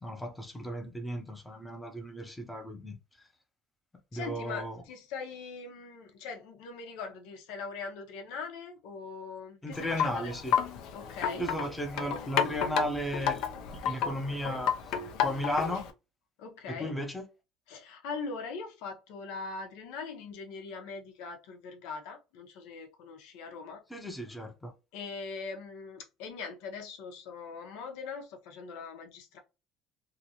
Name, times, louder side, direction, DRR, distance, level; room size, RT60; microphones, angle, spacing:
voice 1, 0.0-3.0 4.1-4.8 9.6-10.5 11.4-13.5 13.9-14.7 15.2-15.9 16.7-17.2 23.9-24.7, equal, 5° left, 0.6 m, -35 dB
voice 2, 4.1-10.4 10.9-11.5 16.4-16.9 17.7-23.8 24.9-29.4, left 4 dB, 85° left, 0.8 m, -41 dB
Wind chime, 9.7-15.9, left 8 dB, 60° left, 0.5 m, -32 dB
2.9 x 2.5 x 2.8 m
cardioid pair, 170°, 0 cm